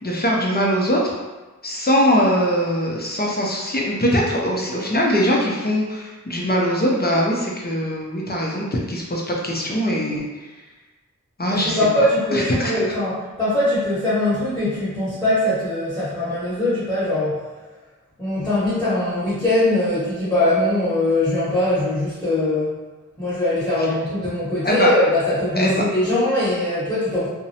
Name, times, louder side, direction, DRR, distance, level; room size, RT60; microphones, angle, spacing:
voice 1, 0.0-1.1 1.6-10.3 11.4-11.8 12.3-12.7 24.6-24.9 25.6-25.8, equal, 30° left, -2 dB, 0.5 m, -21 dB
voice 2, 11.5-17.4 18.2-22.8 23.2-27.3, left 1 dB, 5° left, -13 dB, 1.0 m, -21 dB
2.5 x 2.0 x 2.7 m, 1.2 s
wide cardioid pair, 50°, 31 cm